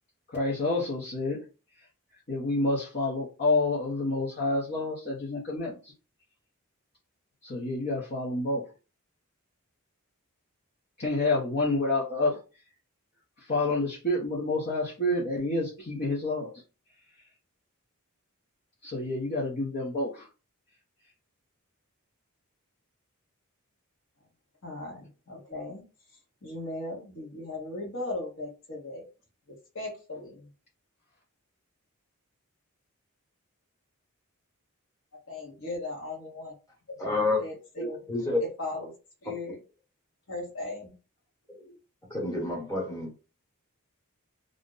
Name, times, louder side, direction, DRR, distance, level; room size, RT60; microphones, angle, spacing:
voice 1, 0.3-1.4 2.3-5.8 7.4-8.6 11.0-12.4 13.5-16.5 18.8-20.3, left 2 dB, 50° left, -6 dB, 0.8 m, -28 dB
voice 2, 24.6-25.8 26.4-29.0 29.5-30.5 35.3-36.5 37.0-38.1 38.4-38.9 39.2-39.6 40.3-40.9, left 2 dB, 65° left, -1 dB, 1.1 m, -37 dB
voice 3, 37.0-37.4 38.1-38.4 42.1-43.1, left 2 dB, 15° left, -3 dB, 1.1 m, -28 dB
2.5 x 2.1 x 3.7 m, 0.33 s
head